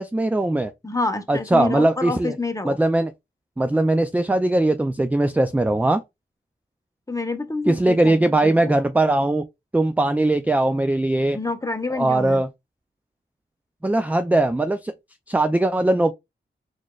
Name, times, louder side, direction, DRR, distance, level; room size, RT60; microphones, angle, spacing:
voice 1, 0.0-0.7 1.3-2.3 2.6-3.1 3.6-6.0 7.7-9.4 9.7-11.4 11.9-12.5 13.8-14.9 15.3-16.1, right 2 dB, 10° right, 0.3 m, -20 dB
voice 2, 0.8-2.8 7.1-8.7 11.3-12.4, left 3 dB, 15° left, 0.8 m, -28 dB
4.0 x 3.2 x 2.3 m
cardioid pair, 45°, 20 cm